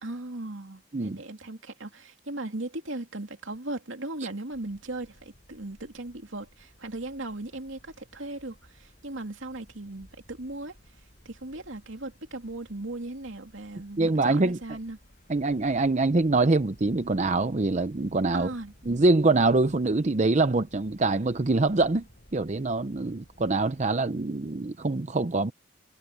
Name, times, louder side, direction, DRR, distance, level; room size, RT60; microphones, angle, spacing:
voice 1, 0.0-10.8 11.2-15.0 18.3-18.7, right 2 dB, 80° right, 2.7 m, -37 dB
sound 1, 4.5-24.0, equal, 45° left, 7.1 m, -57 dB
voice 2, 14.0-14.6 15.3-18.5 18.9-22.0 22.3-25.5, right 3 dB, 35° right, 0.6 m, -24 dB
head